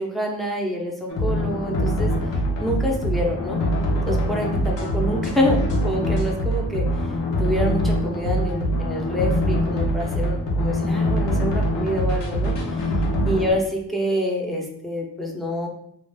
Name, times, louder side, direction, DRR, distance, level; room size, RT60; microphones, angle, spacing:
voice 1, 0.0-2.1 2.6-3.6 4.1-6.9 7.4-12.8 13.3-15.7, equal, ahead, -1 dB, 0.7 m, -27 dB
sound 1, 1.1-13.5, equal, 80° left, 0.8 m, -23 dB
2.5 x 2.4 x 3.4 m, 0.70 s
cardioid pair, 70°, 43 cm